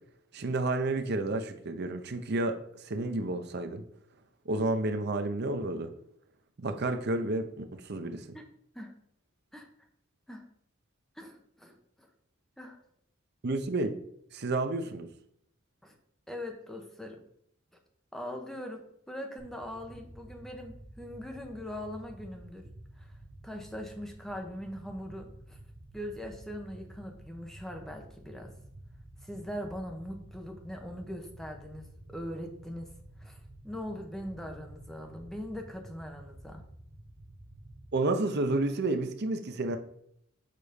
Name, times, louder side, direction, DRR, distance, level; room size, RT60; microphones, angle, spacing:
voice 1, 0.3-2.6 2.8-3.8 4.5-5.9 6.6-8.4 13.4-13.9 14.3-15.1 37.9-39.8, right 2 dB, 55° right, 7 dB, 0.7 m, -30 dB
voice 2, 11.2-11.7 12.6-12.8 15.8-15.9 16.3-17.2 18.1-22.6 23.0-23.1 23.4-25.6 25.9-28.5 29.2-31.8 32.1-32.9 33.2-33.4 33.6-36.6, equal, ahead, 3 dB, 1.0 m, -41 dB
sound 1, 19.4-37.9, right 1 dB, 40° right, 1.1 m, -51 dB
6.7 x 4.1 x 5.1 m, 0.71 s
head